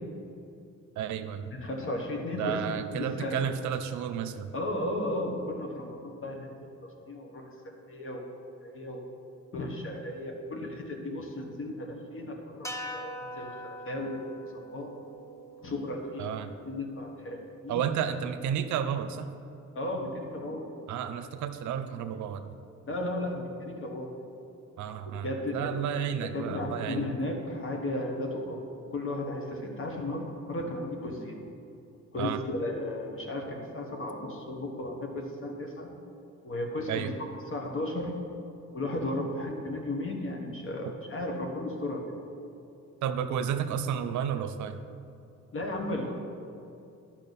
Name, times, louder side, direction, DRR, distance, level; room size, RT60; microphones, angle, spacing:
voice 1, 1.0-1.5 2.4-4.5 16.2-16.5 17.7-19.3 20.9-22.6 24.8-27.0 32.2-32.4 36.9-37.1 43.0-44.8, right 8 dB, 75° right, 10 dB, 0.6 m, -32 dB
voice 2, 1.5-3.4 4.5-6.5 7.0-7.5 7.9-8.2 8.6-9.0 9.5-14.9 15.6-17.4 17.6-17.9 19.7-20.7 22.9-24.1 25.2-25.7 26.2-28.6 28.9-31.4 32.1-35.9 36.4-37.1 37.5-38.1 38.7-42.1 45.5-46.1, left 1 dB, 45° left, 1 dB, 1.5 m, -34 dB
sound 1, 12.6-17.0, equal, 10° left, 0.9 m, -43 dB
10.5 x 5.9 x 4.1 m, 2.7 s
cardioid pair, 90°, 30 cm